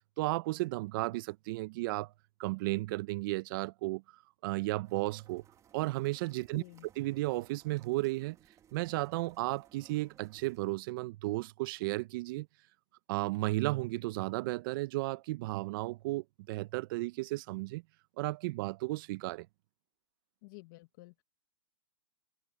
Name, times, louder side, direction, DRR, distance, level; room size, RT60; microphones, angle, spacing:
voice 1, 0.2-2.1 2.4-4.0 4.4-5.4 5.7-6.6 7.0-8.4 8.7-12.5 13.1-17.8 18.2-19.5, right 20 dB, 45° right, 0.9 m, -34 dB
sound 1, 4.8-10.6, right 9 dB, 20° right, 2.4 m, -63 dB
voice 2, 6.5-6.9 20.4-21.2, left 24 dB, 40° left, 1.6 m, -51 dB
open air
hypercardioid pair, 135°, 16 cm